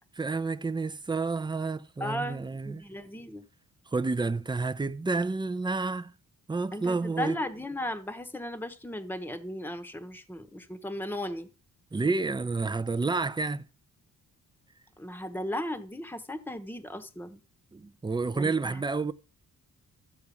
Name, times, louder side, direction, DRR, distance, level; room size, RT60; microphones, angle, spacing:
voice 1, 0.2-2.8 3.9-6.1 6.5-7.4 11.9-13.6 17.7-19.1, right 3 dB, 15° right, 0.6 m, -30 dB
voice 2, 2.0-3.4 6.7-11.5 15.0-17.4 18.3-18.8, left 1 dB, 5° left, 1.1 m, -36 dB
13.5 x 4.7 x 8.4 m
cardioid pair, 110°, 33 cm